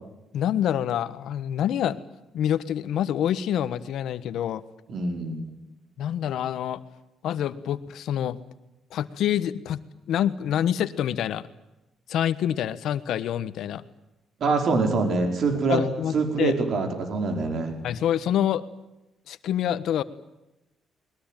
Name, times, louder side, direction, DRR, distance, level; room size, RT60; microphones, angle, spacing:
voice 1, 0.3-2.0 2.3-4.6 6.0-6.8 7.2-8.4 8.9-9.8 10.1-11.4 12.1-13.8 15.7-16.6 17.8-18.6 19.3-20.0, left 10 dB, 75° left, 14 dB, 1.3 m, -26 dB
voice 2, 4.9-5.4 14.4-15.8 16.1-17.8, right 4 dB, 60° right, 5 dB, 5.0 m, -24 dB
21.5 x 21.0 x 9.2 m, 0.93 s
cardioid pair, 90°, 0 cm